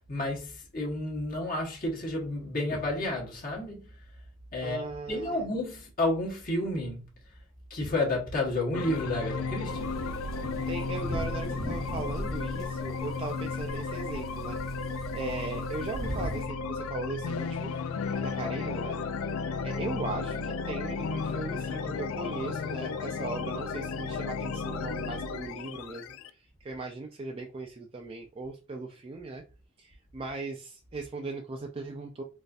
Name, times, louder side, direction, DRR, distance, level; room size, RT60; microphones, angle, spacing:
voice 1, 0.0-3.9 4.5-7.1 7.7-9.9, left 2 dB, 45° left, 1.1 m, -31 dB
voice 2, 4.6-5.5 10.7-14.6 15.1-17.7 18.2-19.0 19.6-26.1 26.3-29.4 29.8-32.2, right 3 dB, 25° right, 0.3 m, -38 dB
sound 1, 8.7-26.3, left 4 dB, 90° left, 0.3 m, -34 dB
sound 2, 9.7-16.4, equal, ahead, 0.8 m, -39 dB
4.0 x 2.5 x 2.4 m
head